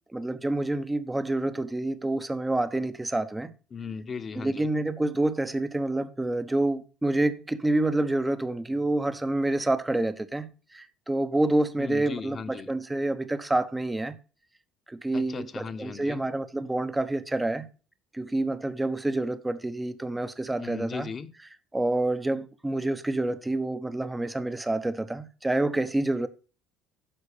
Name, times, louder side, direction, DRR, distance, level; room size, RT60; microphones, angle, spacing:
voice 1, 0.1-3.5 4.4-14.2 14.9-17.7 18.1-21.1 21.7-26.3, right 2 dB, 10° right, 0.8 m, -28 dB
voice 2, 3.7-4.7 11.8-12.7 15.1-16.2 20.6-21.3, left 5 dB, 35° left, 1.0 m, -37 dB
10.0 x 6.1 x 4.9 m
supercardioid pair, 95°, 0 cm